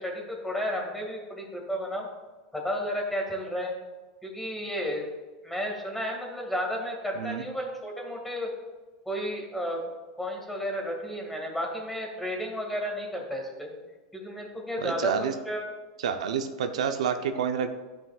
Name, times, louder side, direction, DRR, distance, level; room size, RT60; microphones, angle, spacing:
voice 1, 0.0-2.1 2.5-3.7 4.2-5.1 5.4-8.5 9.1-9.8 10.2-13.7 14.1-15.6, equal, 5° left, 0 dB, 2.0 m, -32 dB
voice 2, 14.8-15.3 16.0-17.7, right 7 dB, 85° right, 7 dB, 0.7 m, -28 dB
13.0 x 5.7 x 2.4 m, 1.2 s
supercardioid pair, 120°, 3 cm